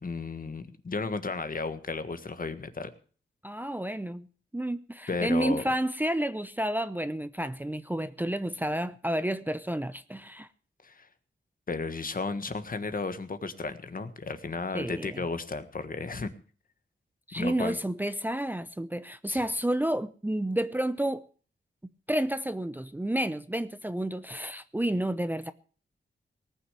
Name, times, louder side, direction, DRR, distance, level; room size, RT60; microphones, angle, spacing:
voice 1, 0.0-2.9 5.1-5.7 10.8-11.1 11.7-16.3 17.4-17.8 19.3-19.4, left 4 dB, 45° left, 1.5 m, -34 dB
voice 2, 3.4-4.3 4.5-10.5 14.7-15.2 17.3-21.2 22.1-25.5, right 1 dB, 10° right, 0.6 m, -30 dB
18.5 x 6.5 x 8.2 m
wide cardioid pair, 80°, 19 cm